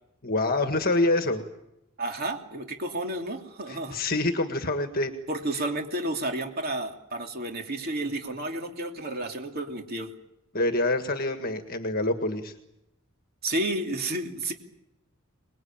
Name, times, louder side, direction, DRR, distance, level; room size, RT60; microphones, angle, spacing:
voice 1, 0.2-1.4 3.7-5.1 10.5-12.5, left 2 dB, 45° left, 7 dB, 1.7 m, -26 dB
voice 2, 2.0-4.0 5.3-10.1 13.4-14.5, right 1 dB, 45° right, 3 dB, 2.9 m, -31 dB
25.5 x 20.5 x 8.8 m, 0.85 s
head